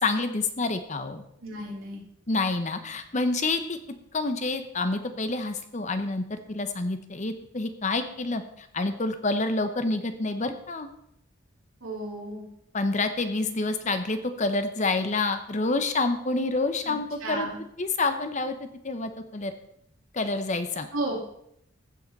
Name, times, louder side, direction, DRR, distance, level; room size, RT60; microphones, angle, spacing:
voice 1, 0.0-1.2 2.3-3.8 4.1-10.9 12.7-17.5 17.8-19.5 20.1-20.9, left 3 dB, 35° left, 9 dB, 0.8 m, -28 dB
voice 2, 1.4-2.0 11.8-12.5 16.9-17.6 20.9-21.3, right 1 dB, 75° right, -3 dB, 2.3 m, -33 dB
15.5 x 5.7 x 4.0 m, 0.73 s
head